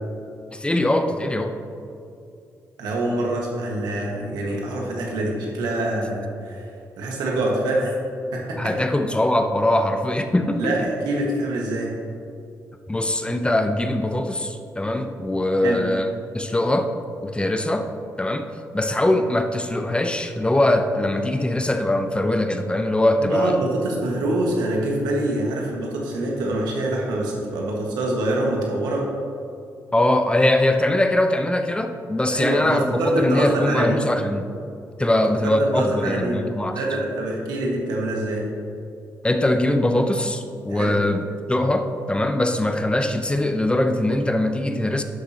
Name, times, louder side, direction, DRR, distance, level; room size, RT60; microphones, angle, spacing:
voice 1, 0.5-1.5 8.6-10.7 12.9-16.9 17.2-17.9 18.2-18.5 18.7-23.6 29.9-34.5 35.0-36.8 39.2-45.0, left 1 dB, 15° left, 6 dB, 0.7 m, -22 dB
voice 2, 2.8-6.7 7.0-7.9 8.3-8.7 10.6-11.9 15.6-15.8 23.2-29.1 32.3-34.0 35.1-36.4 36.7-38.4 40.7-40.9, right 1 dB, 85° right, -2 dB, 1.6 m, -25 dB
11.5 x 6.7 x 2.9 m, 2.5 s
supercardioid pair, 60°, 7 cm